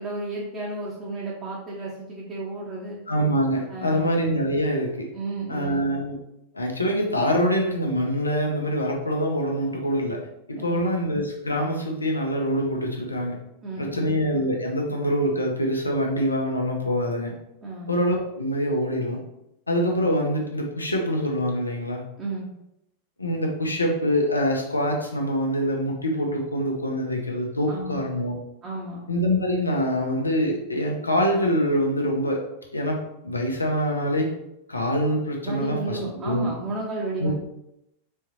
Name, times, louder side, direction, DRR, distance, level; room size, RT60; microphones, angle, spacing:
voice 1, 0.0-3.0 3.7-4.1 5.1-5.8 10.6-10.8 13.6-14.1 17.6-18.0 22.2-22.5 27.7-28.0 28.6-29.0 35.4-37.3, right 2 dB, 30° right, -5 dB, 1.0 m, -33 dB
voice 2, 3.1-5.1 5.5-6.1 6.5-10.2 10.5-13.4 13.8-17.3 17.9-19.2 19.7-22.0 23.2-28.4 29.1-32.4 32.7-33.0 33.2-34.3 34.7-36.5 37.2-37.3, equal, 80° left, 0 dB, 0.9 m, -25 dB
4.4 x 3.6 x 3.1 m, 0.85 s
figure-of-eight pair, 90°, 0 cm